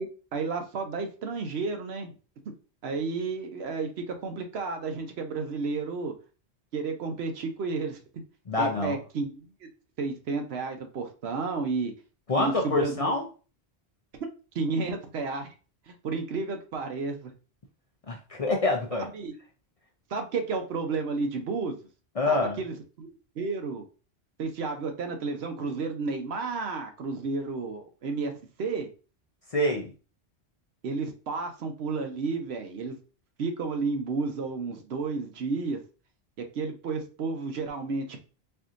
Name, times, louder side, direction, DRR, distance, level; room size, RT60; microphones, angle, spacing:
voice 1, 0.0-2.1 2.8-6.1 6.7-8.0 8.6-9.7 10.0-11.9 12.4-13.1 14.5-15.5 15.9-17.3 19.0-19.3 20.1-21.7 22.3-23.8 24.4-28.3 28.6-28.9 30.8-32.9 33.4-35.8 36.5-38.2, right 4 dB, 75° right, 5 dB, 1.0 m, -32 dB
voice 2, 8.5-9.0 12.3-13.2 18.1-19.1 22.2-22.6 29.5-29.9, left 2 dB, 45° left, 1 dB, 0.5 m, -26 dB
4.4 x 2.7 x 2.4 m, 0.35 s
omnidirectional pair, 1.1 m